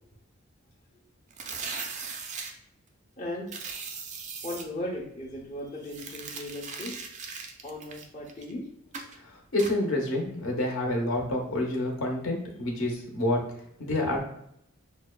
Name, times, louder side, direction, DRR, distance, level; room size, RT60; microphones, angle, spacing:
sound 1, 1.3-2.5 3.5-4.6 5.8-8.5 8.9-9.2 9.6-9.7, right 5 dB, 35° right, 0.3 m, -38 dB
voice 1, 3.2-3.5 4.4-6.9 7.6-8.7, left 1 dB, 35° left, -4 dB, 0.6 m, -37 dB
voice 2, 9.5-13.4 13.8-14.2, left 1 dB, 70° left, 0 dB, 0.9 m, -28 dB
5.7 x 2.2 x 2.2 m, 0.73 s
head